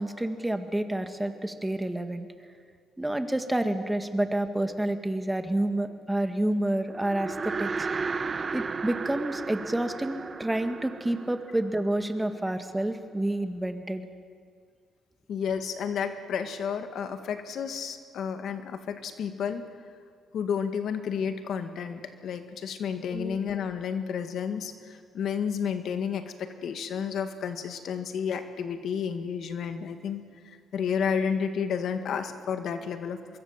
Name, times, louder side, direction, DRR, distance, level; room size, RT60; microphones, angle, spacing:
voice 1, 0.0-2.3 3.0-7.9 8.5-14.0 23.1-23.4, right 1 dB, 10° right, 7 dB, 2.0 m, -29 dB
sound 1, 6.9-12.3, right 4 dB, 35° right, 0.8 m, -34 dB
voice 2, 15.3-19.6 20.3-33.2, left 7 dB, 70° left, 8 dB, 1.9 m, -31 dB
24.5 x 22.0 x 7.4 m, 2.1 s
cardioid pair, 90°, 0 cm